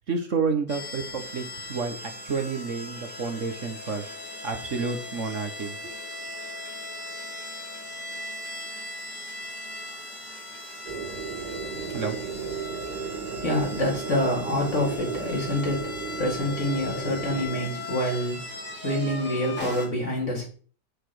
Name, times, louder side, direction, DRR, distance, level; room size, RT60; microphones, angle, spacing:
voice 1, 0.1-4.0 4.4-5.7 11.9-12.2, right 4 dB, 55° right, 1.5 m, -30 dB
sound 1, 0.7-19.9, left 2 dB, 5° left, 3.4 m, -38 dB
sound 2, 10.8-17.6, right 6 dB, 85° right, 2.7 m, -35 dB
voice 2, 12.8-20.4, left 1 dB, 50° left, 4.1 m, -27 dB
8.5 x 6.9 x 4.9 m
omnidirectional pair, 1.6 m